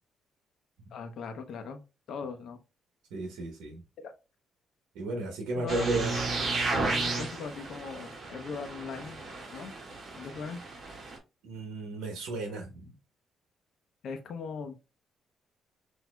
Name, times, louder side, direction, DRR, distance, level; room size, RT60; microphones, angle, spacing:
voice 1, 0.9-1.8 2.1-2.6 4.0-4.1 5.5-5.9 6.1-6.3 6.9-9.2 9.5-9.7 10.2-10.6 14.0-14.7, left 5 dB, 70° left, 0.7 m, -39 dB
voice 2, 3.1-3.8 4.9-6.1 11.4-12.8, right 2 dB, 85° right, 1.0 m, -34 dB
sound 1, 5.7-11.2, right 3 dB, 50° right, 1.6 m, -33 dB
6.1 x 2.7 x 2.3 m
cardioid pair, 90°, 0 cm